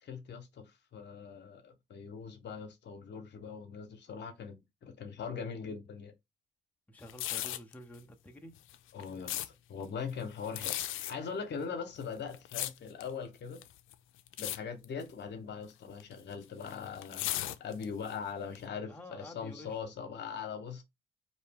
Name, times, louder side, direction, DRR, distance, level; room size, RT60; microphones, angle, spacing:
voice 1, 0.0-0.6 0.9-6.1 8.9-13.6 14.4-20.8, left 6 dB, 60° left, 1.0 m, -41 dB
voice 2, 6.9-8.6 18.9-19.8, left 1 dB, 5° left, 0.8 m, -50 dB
sound 1, 7.0-7.7 8.6-9.5 10.4-11.1 12.0-13.1 13.6-13.9 14.3-14.6 14.8-15.1 16.0-18.1 18.6-18.7, left 13 dB, 85° left, 0.5 m, -36 dB
4.1 x 2.8 x 3.5 m
cardioid pair, 90°, 20 cm